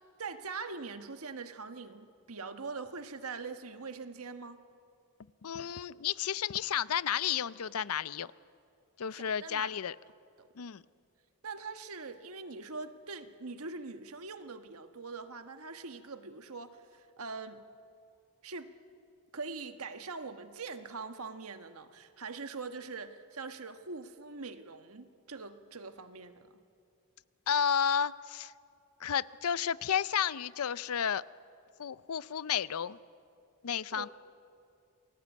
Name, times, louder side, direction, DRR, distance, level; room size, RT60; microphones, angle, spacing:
voice 1, 0.2-4.6 9.1-9.7 10.4-10.5 11.4-17.6 18.4-18.7 19.3-26.5 33.9-34.1, right 4 dB, 75° right, 9 dB, 1.3 m, -43 dB
voice 2, 5.4-8.3 9.0-10.0 10.6-10.8 27.5-28.5 29.0-31.2 31.8-33.0 33.6-34.1, left 8 dB, 75° left, 18 dB, 0.5 m, -32 dB
28.5 x 21.0 x 8.4 m, 2.5 s
head